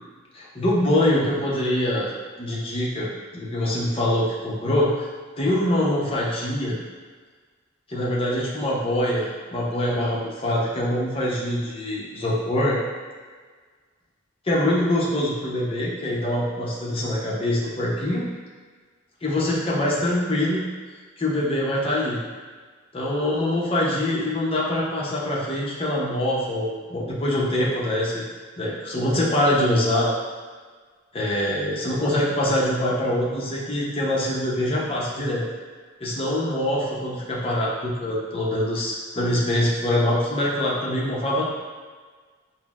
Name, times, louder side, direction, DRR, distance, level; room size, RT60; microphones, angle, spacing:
voice 1, 0.3-2.1 2.4-5.1 5.4-6.8 7.9-12.8 14.4-18.3 19.2-20.6 21.2-22.2 22.9-28.2 28.6-30.1 31.1-35.4 36.0-41.5, left 1 dB, 30° left, -5 dB, 0.6 m, -24 dB
5.8 x 2.0 x 2.4 m, 1.5 s
head